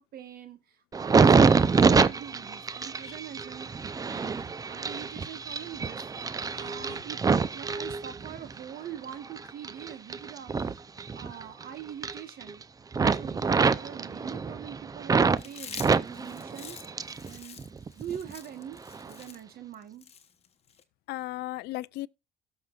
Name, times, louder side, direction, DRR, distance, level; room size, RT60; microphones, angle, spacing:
voice 1, 0.0-6.0 6.6-7.2 7.5-10.8 11.1-12.6 13.2-16.8 17.3-17.6 18.0-20.1, right 9 dB, 60° right, 1.2 m, -43 dB
sound 1, 0.9-8.6 9.0-11.6 11.9-12.6 12.9-15.4 15.7-17.3 17.6-18.3 18.9-19.1, right 5 dB, 20° right, 0.5 m, -26 dB
voice 2, 6.6-7.0 21.1-22.1, left 17 dB, 80° left, 0.4 m, -37 dB
Chewing mastication, 15.4-20.8, left 7 dB, 35° left, 1.2 m, -46 dB
17.0 x 6.3 x 2.3 m
cardioid pair, 110°, 17 cm